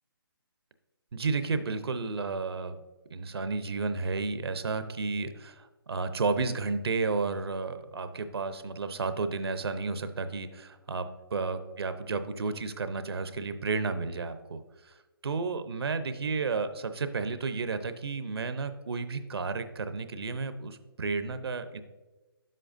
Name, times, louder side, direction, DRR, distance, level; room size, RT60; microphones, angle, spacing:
voice 1, 1.1-2.8 3.1-11.1 11.3-14.9 15.2-21.8, right 4 dB, 80° right, 10 dB, 0.7 m, -32 dB
9.6 x 7.6 x 2.6 m, 1.2 s
hypercardioid pair, 155°, 13 cm